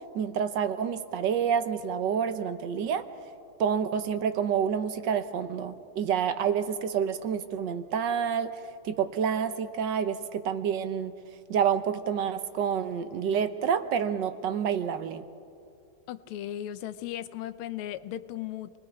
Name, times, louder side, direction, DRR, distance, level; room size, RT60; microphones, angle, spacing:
voice 1, 0.1-3.1 3.6-8.5 8.8-11.1 11.5-15.2, right 7 dB, 65° right, 10 dB, 1.4 m, -28 dB
voice 2, 16.1-18.7, left 12 dB, 85° left, 12 dB, 1.6 m, -36 dB
27.5 x 20.5 x 4.6 m, 2.4 s
omnidirectional pair, 2.3 m